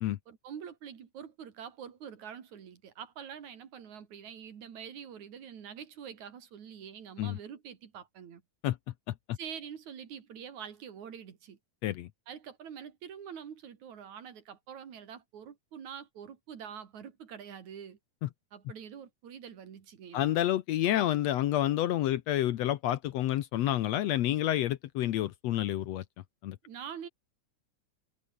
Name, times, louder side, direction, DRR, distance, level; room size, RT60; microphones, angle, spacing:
voice 1, 0.3-8.4 9.4-11.6 12.3-18.0 18.5-20.3 26.6-27.1, right 8 dB, 70° right, 3.7 m, -45 dB
voice 2, 20.1-26.0 26.4-26.6, left 13 dB, 70° left, 1.8 m, -29 dB
omnidirectional pair, 3.5 m